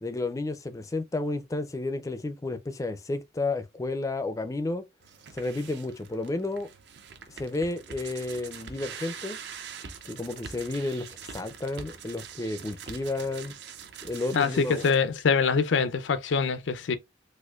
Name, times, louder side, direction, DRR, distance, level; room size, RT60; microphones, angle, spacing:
voice 1, 0.0-4.8 5.3-6.7 7.3-9.4 10.0-13.5 14.0-14.8, left 2 dB, 20° left, 0.4 m, -32 dB
sound 1, 5.0-15.0, right 6 dB, 65° right, 0.5 m, -44 dB
voice 2, 14.3-17.0, left 5 dB, 85° left, 0.5 m, -24 dB
4.2 x 2.5 x 2.3 m
head